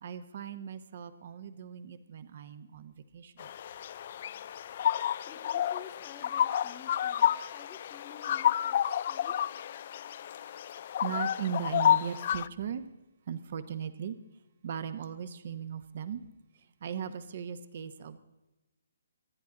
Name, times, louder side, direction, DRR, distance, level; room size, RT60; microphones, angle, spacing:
voice 1, 0.0-3.5 10.4-10.6 11.0-12.9 13.3-14.2 14.6-16.2 16.6-18.2, right 8 dB, 40° right, 13 dB, 1.0 m, -38 dB
sound 1, 3.4-12.5, left 10 dB, 35° left, 0.4 m, -30 dB
voice 2, 5.3-9.4, left 9 dB, 15° left, 10 dB, 0.7 m, -51 dB
25.5 x 10.5 x 3.8 m, 1.0 s
hypercardioid pair, 175°, 0 cm